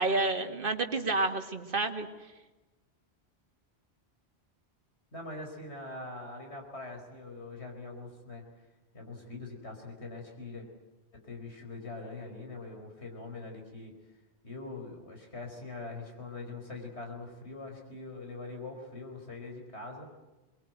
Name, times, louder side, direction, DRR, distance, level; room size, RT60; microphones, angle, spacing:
voice 1, 0.0-2.1, right 3 dB, 55° right, 6 dB, 2.0 m, -29 dB
voice 2, 5.1-8.4 8.9-10.7 11.1-13.9 14.4-20.1, left 3 dB, 85° left, 3 dB, 4.8 m, -43 dB
22.5 x 22.0 x 9.2 m, 1.1 s
omnidirectional pair, 1.1 m